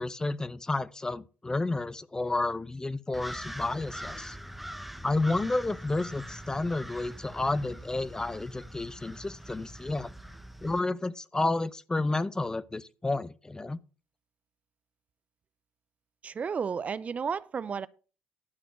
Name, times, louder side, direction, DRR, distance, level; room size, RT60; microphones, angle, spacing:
voice 1, 0.0-4.4 5.0-10.1 10.6-13.8, left 2 dB, 20° left, 0.7 m, -31 dB
sound 1, 3.1-10.8, equal, ahead, 1.0 m, -43 dB
voice 2, 16.2-17.9, right 6 dB, 40° right, 0.6 m, -32 dB
12.0 x 4.2 x 7.7 m
supercardioid pair, 65°, 4 cm